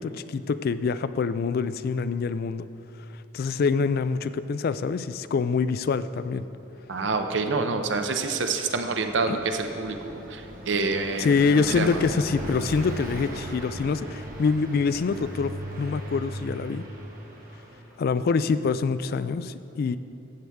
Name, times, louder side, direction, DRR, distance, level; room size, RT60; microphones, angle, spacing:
voice 1, 0.0-2.7 3.3-6.4 9.3-9.4 11.2-15.5 15.8-16.8 18.0-20.0, left 5 dB, 50° left, 14 dB, 0.3 m, -25 dB
voice 2, 6.9-11.3 11.5-12.0, right 4 dB, 65° right, 6 dB, 0.7 m, -27 dB
Car passing by, 7.3-18.1, right 1 dB, 45° right, 1.3 m, -38 dB
13.5 x 7.9 x 3.5 m, 2.9 s
head